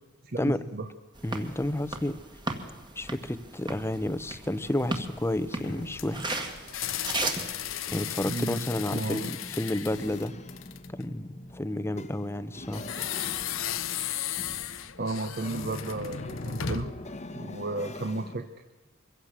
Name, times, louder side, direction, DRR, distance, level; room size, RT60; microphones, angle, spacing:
voice 1, 0.2-0.9 8.3-9.3 15.0-16.9 17.3-18.5, right 2 dB, 50° right, 7 dB, 1.1 m, -33 dB
voice 2, 1.2-2.2 2.9-6.4 7.9-10.3 10.9-12.8, left 1 dB, 10° left, 13 dB, 0.8 m, -31 dB
sound 1, 1.2-7.8, right 2 dB, 20° right, 1.9 m, -36 dB
sound 2, 5.6-11.0 12.7-17.1, left 9 dB, 70° left, 0.9 m, -35 dB
sound 3, 7.9-18.4, left 2 dB, 35° left, 1.2 m, -44 dB
24.0 x 16.5 x 7.4 m, 1.2 s
head